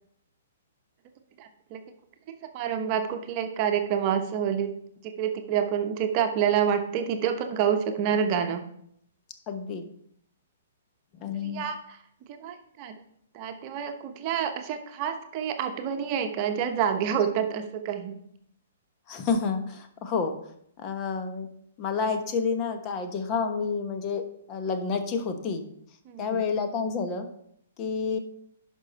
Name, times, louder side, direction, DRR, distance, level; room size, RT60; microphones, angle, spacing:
voice 1, 1.4-1.8 2.5-4.7 5.0-8.6 11.4-12.0 12.3-13.0 13.3-18.2 26.0-26.5, right 8 dB, 35° right, 6 dB, 1.0 m, -28 dB
voice 2, 9.5-9.8 11.2-11.6 19.1-20.4 20.8-21.5 21.8-25.7 26.2-27.3 27.8-28.2, left 5 dB, 30° left, 7 dB, 1.2 m, -29 dB
11.0 x 5.5 x 4.3 m, 0.70 s
figure-of-eight pair, 120°, 0 cm